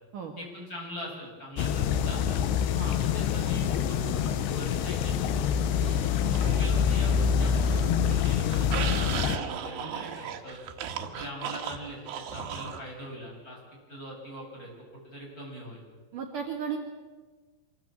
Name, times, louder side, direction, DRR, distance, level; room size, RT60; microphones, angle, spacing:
voice 1, 0.4-2.4 2.8-5.9 6.3-10.6 11.0-13.6 13.9-15.8, equal, 20° left, -2 dB, 8.4 m, -42 dB
sound 1, 1.6-9.4, left 7 dB, 85° left, 3.2 m, -26 dB
sound 2, 5.8-7.2 7.5-12.8, right 8 dB, 85° right, 3.7 m, -37 dB
voice 2, 6.2-6.6 16.1-16.8, right 7 dB, 55° right, 1 dB, 3.1 m, -35 dB
25.0 x 22.5 x 7.8 m, 1.4 s
omnidirectional pair, 4.8 m